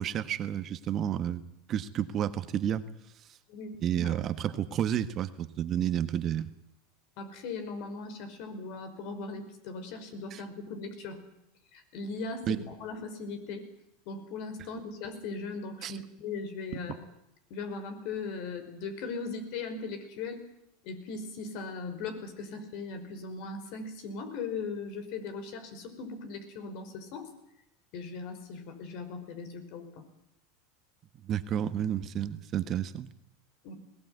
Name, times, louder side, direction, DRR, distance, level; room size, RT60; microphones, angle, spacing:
voice 1, 0.0-1.4 1.7-2.8 3.8-6.5 10.3-10.4 12.5-12.6 15.8-15.9 31.2-33.1, right 10 dB, 40° right, 12 dB, 1.4 m, -30 dB
voice 2, 7.2-11.2 11.7-13.7 14.1-17.0 17.5-20.4 20.8-27.3 27.9-30.0 33.6-33.7, left 4 dB, 60° left, 8 dB, 5.2 m, -39 dB
21.0 x 18.0 x 9.5 m, 0.83 s
supercardioid pair, 110°, 0 cm